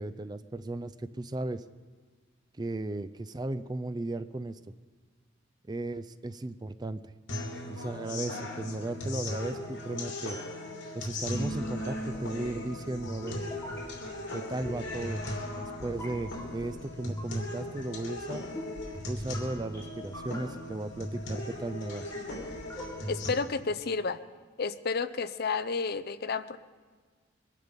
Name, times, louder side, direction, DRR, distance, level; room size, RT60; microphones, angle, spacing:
voice 1, 0.0-1.6 2.6-4.6 5.7-7.0 7.7-10.4 10.9-13.4 14.3-15.2 15.5-18.4 19.0-22.0, right 2 dB, 20° right, 12 dB, 0.4 m, -36 dB
sound 1, 7.3-23.3, left 1 dB, 85° left, 3.0 m, -38 dB
sound 2, 11.2-23.3, equal, 15° left, 3.1 m, -46 dB
voice 2, 23.1-24.2 24.6-26.6, left 4 dB, 55° left, 13 dB, 0.6 m, -31 dB
23.0 x 12.0 x 5.3 m, 1.5 s
head